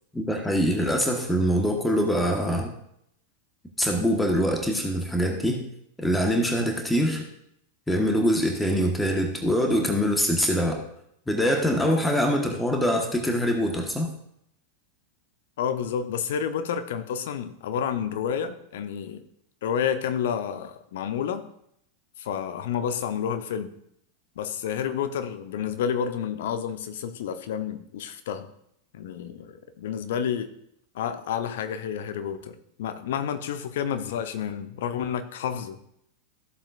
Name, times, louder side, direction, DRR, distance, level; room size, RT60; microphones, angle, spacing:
voice 1, 0.1-2.7 3.8-5.6 6.0-7.3 7.9-10.8 11.3-14.1, equal, 5° left, 2 dB, 1.4 m, -24 dB
voice 2, 15.6-19.2 19.6-21.4 22.2-23.7 24.4-28.5 28.9-30.5 30.9-35.8, left 8 dB, 55° left, 9 dB, 0.9 m, -30 dB
14.0 x 7.4 x 2.6 m, 0.72 s
figure-of-eight pair, 90°, 0 cm